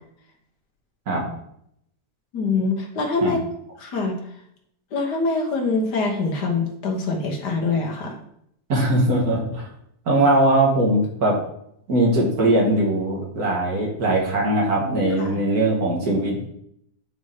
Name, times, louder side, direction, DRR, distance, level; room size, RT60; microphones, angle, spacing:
voice 1, 2.3-3.4 3.8-4.2 4.9-8.2 15.2-15.4, left 3 dB, 85° left, 1 dB, 1.8 m, -24 dB
voice 2, 8.7-9.7 10.1-11.4 11.9-16.5, right 1 dB, 65° right, -2 dB, 2.1 m, -20 dB
9.6 x 4.8 x 2.9 m, 0.73 s
omnidirectional pair, 1.7 m